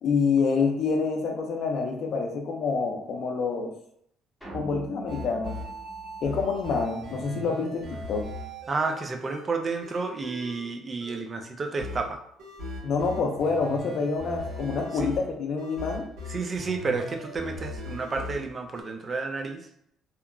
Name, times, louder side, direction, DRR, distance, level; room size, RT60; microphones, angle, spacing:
voice 1, 0.0-3.7 4.5-5.6 6.2-8.3 12.8-16.1, left 4 dB, 55° left, 3 dB, 0.5 m, -27 dB
sound 1, 4.4-6.9, right 2 dB, 5° left, 0.8 m, -42 dB
sound 2, 5.1-9.5 9.8-10.8 11.0-11.3 11.8-18.8, left 1 dB, 80° right, 1.2 m, -39 dB
voice 2, 8.7-12.2 14.9-15.1 16.3-19.7, right 4 dB, 25° right, 4 dB, 0.3 m, -31 dB
2.8 x 2.3 x 2.3 m, 0.71 s
cardioid pair, 140°, 0 cm